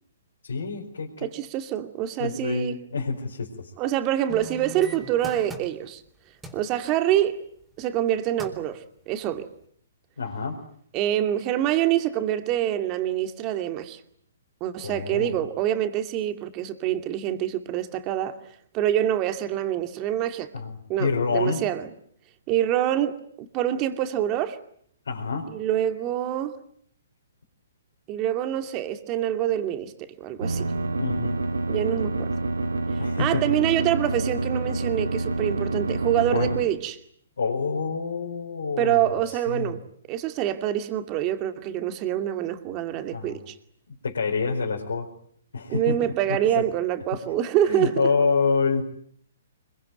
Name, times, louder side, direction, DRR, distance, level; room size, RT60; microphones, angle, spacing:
voice 1, 0.4-1.3 2.2-3.7 10.2-10.6 14.8-15.4 20.5-21.6 25.0-25.5 31.0-31.4 33.0-33.4 36.3-36.5 37.4-39.7 43.1-43.4 44.0-45.1 45.5-46.0 46.3-46.7 47.7-48.8, left 4 dB, 75° left, 4.8 m, -27 dB
voice 2, 1.2-2.8 3.8-6.0 6.5-7.4 7.8-9.5 10.9-14.0 14.6-18.4 18.7-20.5 20.9-21.9 22.5-24.6 25.5-26.6 28.1-30.7 31.7-32.3 33.2-37.0 38.8-39.8 40.1-43.6 45.7-48.1, right 11 dB, 30° right, 2.4 m, -26 dB
sound 1, 4.3-6.1 6.4-6.7 8.0-8.1 8.4-8.7 9.2-9.3, right 2 dB, 10° right, 4.0 m, -40 dB
sound 2, 30.4-36.6, right 2 dB, 80° right, 2.1 m, -27 dB
25.5 x 23.0 x 9.2 m
figure-of-eight pair, 130°, 0 cm